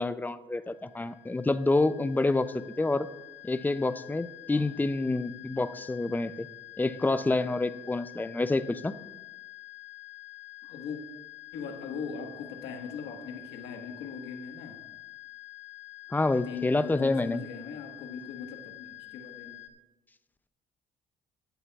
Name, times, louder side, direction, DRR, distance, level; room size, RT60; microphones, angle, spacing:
voice 1, 0.0-3.1 3.4-6.5 6.8-8.9 16.1-17.4, left 2 dB, 10° left, 14 dB, 0.3 m, -28 dB
sound 1, 0.6-19.7, left 22 dB, 40° left, 0.7 m, -48 dB
voice 2, 10.6-11.0 11.5-14.8 16.4-19.6, left 6 dB, 80° left, 4 dB, 1.4 m, -40 dB
15.0 x 9.8 x 2.3 m, 1.1 s
cardioid pair, 110°, 17 cm